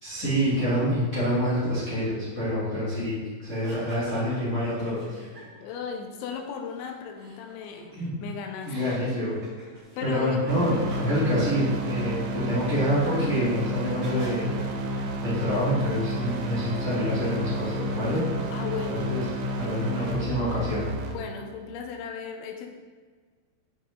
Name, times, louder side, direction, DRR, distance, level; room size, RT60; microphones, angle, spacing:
voice 1, 0.0-5.2 7.9-8.1 8.6-9.4 10.0-14.6 15.2-18.2 18.9-19.2 19.6-20.9, equal, 30° left, -12 dB, 1.4 m, -27 dB
sound 1, 3.4-5.8 6.1-8.1 8.6-14.4, right 1 dB, 65° right, 0.9 m, -47 dB
voice 2, 5.6-9.0 10.0-10.4 18.5-19.2 21.1-22.7, left 6 dB, 80° left, 4 dB, 2.9 m, -36 dB
sound 2, 10.5-21.1, right 1 dB, 85° right, 3.5 m, -31 dB
8.6 x 6.1 x 3.8 m, 1.5 s
omnidirectional pair, 5.8 m